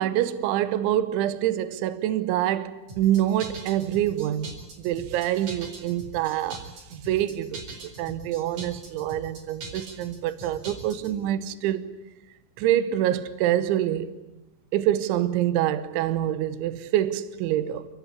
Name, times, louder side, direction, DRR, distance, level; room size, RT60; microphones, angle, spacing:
voice 1, 0.0-7.7 8.0-11.9 12.6-14.1 14.7-17.9, right 12 dB, 75° right, 3.3 m, -26 dB
sound 1, 2.9-11.2, right 3 dB, 40° right, 5.6 m, -41 dB
28.5 x 16.5 x 9.9 m
omnidirectional pair, 5.7 m